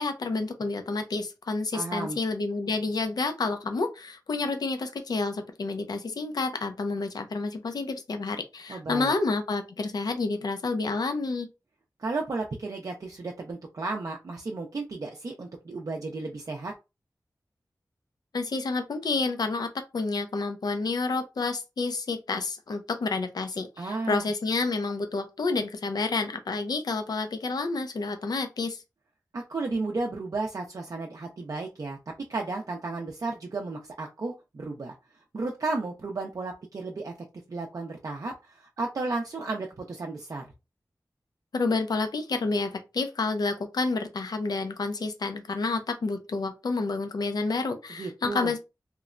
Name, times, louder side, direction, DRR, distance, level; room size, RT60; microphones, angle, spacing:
voice 1, 0.0-11.5 18.3-19.7 19.9-28.8 41.5-48.6, left 3 dB, 70° left, 0.5 m, -29 dB
voice 2, 1.7-2.2 8.7-9.1 12.0-16.7 23.8-24.3 29.3-34.9 35.3-37.1 37.5-40.5 48.0-48.5, right 3 dB, 55° right, 0.4 m, -33 dB
3.0 x 2.1 x 2.4 m
wide cardioid pair, 75°, 7 cm